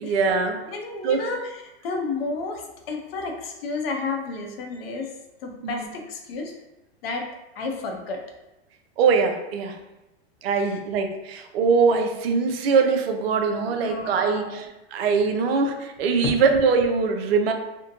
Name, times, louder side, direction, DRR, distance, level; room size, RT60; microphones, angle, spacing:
voice 1, 0.0-0.6 1.0-1.2 5.6-5.9 9.0-9.7 10.4-17.5, right 5 dB, 70° right, 5 dB, 0.5 m, -22 dB
voice 2, 0.7-5.1 5.4-6.5 7.0-7.3 7.6-8.2 10.6-10.8 13.8-14.7 16.2-16.3, left 3 dB, 65° left, 3 dB, 0.7 m, -31 dB
2.6 x 2.1 x 2.6 m, 0.96 s
hypercardioid pair, 120°, 32 cm